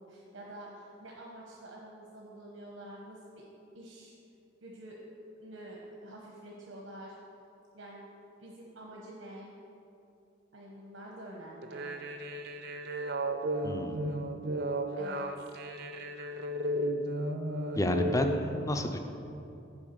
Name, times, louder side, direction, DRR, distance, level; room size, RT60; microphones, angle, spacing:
voice 1, 0.0-3.4 3.7-4.1 4.6-5.0 5.4-7.1 7.7-8.0 8.4-9.5 10.5-11.9 15.0-15.5, right 1 dB, 90° right, -2 dB, 1.0 m, -47 dB
sound 1, 11.6-18.3, right 1 dB, 60° right, 0.5 m, -34 dB
voice 2, 13.6-14.2 17.8-19.0, left 1 dB, 15° left, 6 dB, 0.5 m, -30 dB
7.1 x 5.0 x 6.6 m, 2.7 s
head